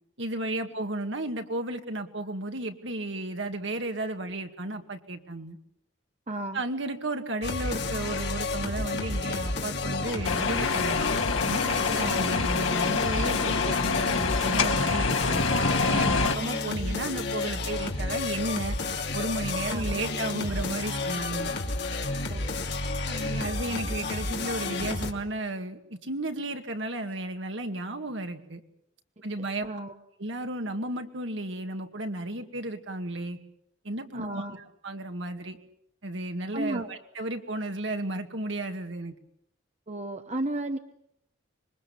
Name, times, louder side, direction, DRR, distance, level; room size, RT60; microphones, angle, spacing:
voice 1, 0.2-5.6 6.5-11.1 11.4-15.5 15.9-18.8 19.1-21.5 23.0-28.6 29.2-29.7 30.2-33.4 33.8-35.6 36.0-39.1, right 2 dB, 70° right, 5 dB, 2.2 m, -33 dB
voice 2, 6.3-6.6 12.0-12.3 19.7-19.8 22.3-22.5 29.6-29.9 34.1-34.6 36.5-36.9 39.9-40.8, right 1 dB, 35° right, 7 dB, 1.0 m, -33 dB
sound 1, 7.4-25.1, left 3 dB, 55° left, 2.8 m, -31 dB
sound 2, 10.2-16.4, left 4 dB, 80° left, 2.1 m, -26 dB
26.0 x 22.5 x 7.2 m, 0.74 s
head